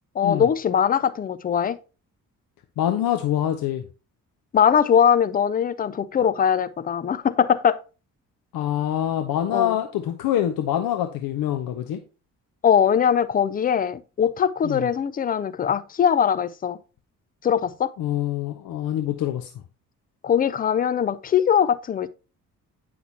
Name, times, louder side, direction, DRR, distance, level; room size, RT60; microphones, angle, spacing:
voice 1, 0.2-1.8 4.5-7.8 9.5-9.8 12.6-16.8 17.4-17.9 20.2-22.1, left 8 dB, 20° left, 0.5 m, -21 dB
voice 2, 2.8-3.8 8.5-12.0 14.6-14.9 18.0-19.5, left 11 dB, 50° left, 0.9 m, -25 dB
9.3 x 5.9 x 2.9 m
figure-of-eight pair, 40°, 45 cm